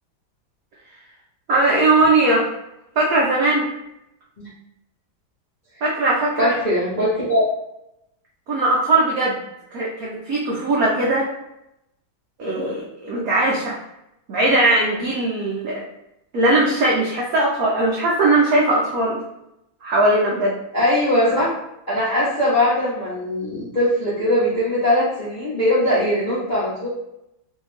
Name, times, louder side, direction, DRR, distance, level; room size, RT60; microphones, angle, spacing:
voice 1, 1.5-2.5 3.0-3.7 5.8-6.5 8.5-9.4 9.7-11.3 12.4-13.8 14.3-15.8 16.3-19.2 19.8-20.6, right 2 dB, 75° right, -4 dB, 0.8 m, -19 dB
voice 2, 6.4-7.4 20.7-21.5 21.9-26.9, left 1 dB, 40° left, -10 dB, 0.6 m, -20 dB
3.1 x 2.7 x 3.2 m, 0.86 s
omnidirectional pair, 2.2 m